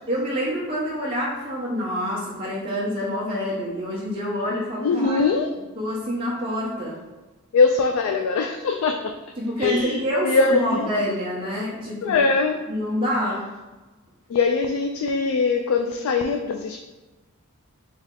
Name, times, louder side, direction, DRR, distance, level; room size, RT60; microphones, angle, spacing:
voice 1, 0.1-5.2 5.7-7.0 9.4-12.2 12.7-13.5, equal, 25° right, -8 dB, 0.9 m, -27 dB
voice 2, 4.8-5.5 7.5-9.1 9.6-10.9 12.0-12.6 14.3-16.8, left 4 dB, 70° left, 4 dB, 0.3 m, -22 dB
3.5 x 3.1 x 3.7 m, 1.2 s
head